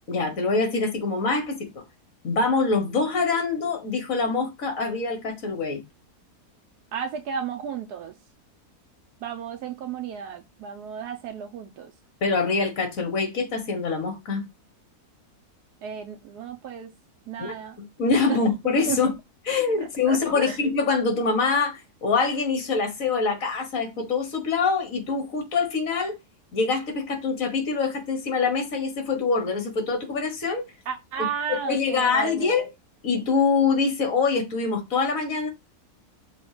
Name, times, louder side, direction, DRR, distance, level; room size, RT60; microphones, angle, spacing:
voice 1, 0.1-1.8 2.2-5.8 12.2-14.4 17.4-19.1 19.5-26.2 26.5-30.7 31.5-32.7 33.0-35.5, left 4 dB, 60° left, 1.9 m, -25 dB
voice 2, 6.9-8.1 9.2-11.9 15.8-16.9 17.3-17.8 18.3-18.4 18.9-19.0 19.8-20.6 30.9-32.6, right 7 dB, 85° right, 1.3 m, -33 dB
6.2 x 3.3 x 5.0 m
omnidirectional pair, 1.7 m